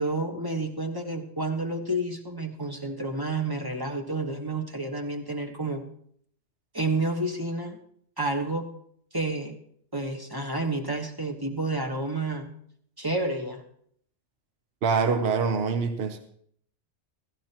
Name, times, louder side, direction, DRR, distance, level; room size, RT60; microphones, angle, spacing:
voice 1, 0.0-5.8 6.7-7.8 8.2-8.7 9.1-9.6 9.9-12.5 13.0-13.6, right 2 dB, 20° right, 2 dB, 1.3 m, -30 dB
voice 2, 14.8-16.2, right 5 dB, 65° right, 7 dB, 1.1 m, -25 dB
15.5 x 15.5 x 3.0 m, 0.65 s
omnidirectional pair, 1.2 m